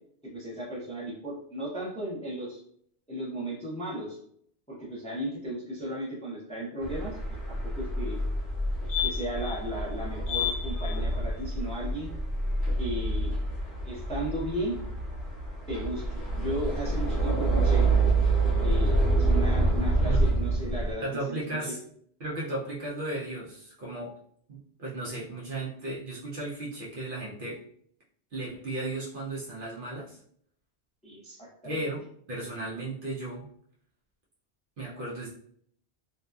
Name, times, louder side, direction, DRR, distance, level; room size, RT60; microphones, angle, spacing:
voice 1, 0.2-2.6 3.1-4.2 4.7-7.2 7.5-8.2 9.0-12.1 12.8-13.4 13.9-14.7 15.7-16.1 16.3-17.9 18.6-21.7 31.0-31.8, right 1 dB, 10° left, -5 dB, 0.5 m, -35 dB
sound 1, 6.8-20.9, right 2 dB, 50° left, 0.8 m, -27 dB
voice 2, 21.0-21.8 22.2-24.1 24.5-27.6 28.3-30.2 31.6-33.5 34.8-35.3, right 2 dB, 55° right, -5 dB, 0.7 m, -35 dB
2.6 x 2.3 x 2.2 m, 0.64 s
omnidirectional pair, 1.2 m